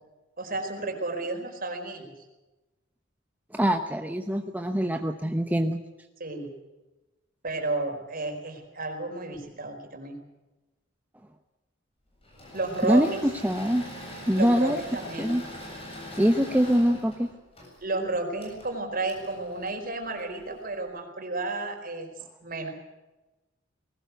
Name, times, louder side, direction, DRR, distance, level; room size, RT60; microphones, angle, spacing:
voice 1, 0.4-2.1 6.2-6.5 7.4-10.2 12.5-13.2 14.4-15.3 17.8-22.1 22.4-22.7, right 2 dB, 50° right, 3 dB, 4.6 m, -32 dB
voice 2, 3.5-5.8 12.8-13.1 13.4-13.8 14.3-14.8 15.2-15.4 16.2-17.3, equal, 10° right, 5 dB, 0.9 m, -23 dB
Engine / Mechanisms, 12.2-20.6, left 1 dB, 30° left, 7.6 m, -43 dB
20.5 x 18.5 x 8.1 m, 1.1 s
head